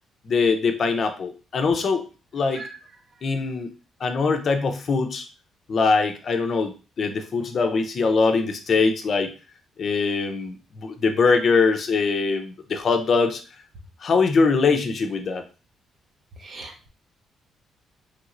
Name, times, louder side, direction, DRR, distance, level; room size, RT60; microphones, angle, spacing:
voice 1, 0.3-2.1 2.3-2.6 3.2-3.7 4.0-5.2 5.7-9.3 9.8-13.4 14.0-15.4, left 4 dB, 50° left, 6 dB, 0.6 m, -22 dB
voice 2, 16.4-16.9, right 3 dB, 50° right, 4 dB, 0.8 m, -39 dB
3.3 x 3.0 x 2.5 m, 0.33 s
cardioid pair, 90°, 0 cm